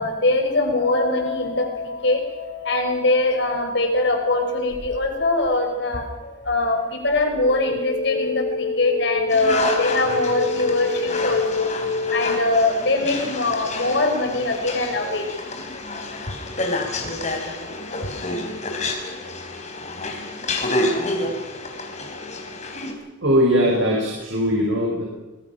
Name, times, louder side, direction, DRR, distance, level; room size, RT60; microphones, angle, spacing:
voice 1, 0.0-11.7 12.1-15.5, left 2 dB, 65° left, 4 dB, 4.5 m, -22 dB
sound 1, 4.7-5.5 7.1-14.8, left 4 dB, 80° left, 3.3 m, -29 dB
sound 2, 9.3-22.9, left 2 dB, 35° left, 4.2 m, -29 dB
voice 2, 23.2-25.0, equal, 90° right, -2 dB, 5.8 m, -20 dB
26.0 x 20.5 x 6.0 m, 1.1 s
head